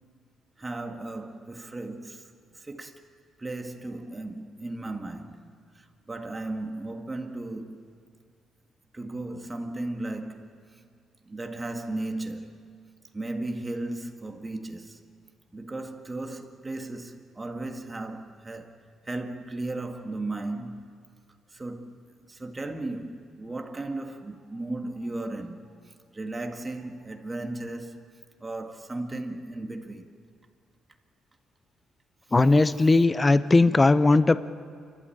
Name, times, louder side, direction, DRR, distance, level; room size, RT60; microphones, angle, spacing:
voice 1, 0.6-2.3 2.6-3.0 3.4-5.4 6.1-7.9 8.9-10.6 11.2-12.7 13.1-15.0 15.5-18.8 19.1-21.0 21.5-21.9 22.3-25.6 26.1-28.1 28.4-30.1 32.8-32.9, right 2 dB, 20° right, 1.9 m, -35 dB
voice 2, 32.3-34.4, left 3 dB, 20° left, 0.6 m, -19 dB
28.5 x 12.5 x 8.7 m
cardioid pair, 90°, 0 cm